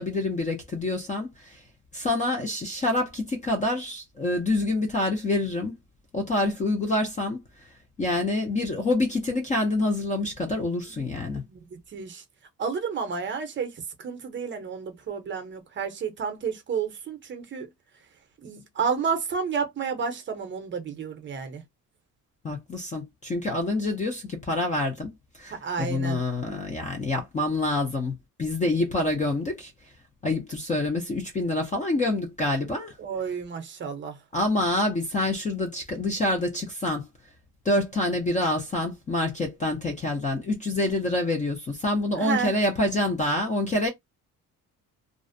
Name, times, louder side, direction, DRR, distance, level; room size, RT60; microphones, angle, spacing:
voice 1, 0.0-1.6 1.9-5.7 6.1-7.4 8.0-11.4 22.4-25.1 25.4-29.7 30.2-32.9 34.3-37.1 37.7-43.9, left 2 dB, 25° left, 0.3 m, -27 dB
voice 2, 11.5-12.2 12.6-17.7 18.4-21.6 25.5-26.2 33.0-34.2 42.2-42.6, right 6 dB, 35° right, 0.6 m, -31 dB
2.4 x 2.0 x 2.5 m
cardioid pair, 175°, 34 cm